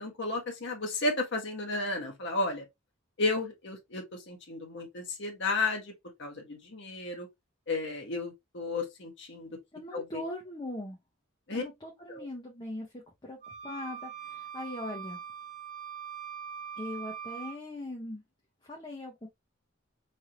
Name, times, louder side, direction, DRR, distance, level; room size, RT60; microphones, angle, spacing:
voice 1, 0.0-2.6 3.2-5.9 6.2-7.3 7.7-9.6 9.9-10.2 11.5-11.6 12.1-12.3, left 3 dB, 60° left, 1.1 m, -33 dB
voice 2, 9.7-11.0 11.5-15.2 16.8-18.2 18.6-19.3, left 1 dB, 20° left, 0.7 m, -40 dB
sound 1, 13.4-17.6, right 8 dB, 40° right, 0.9 m, -42 dB
3.2 x 2.7 x 2.7 m
head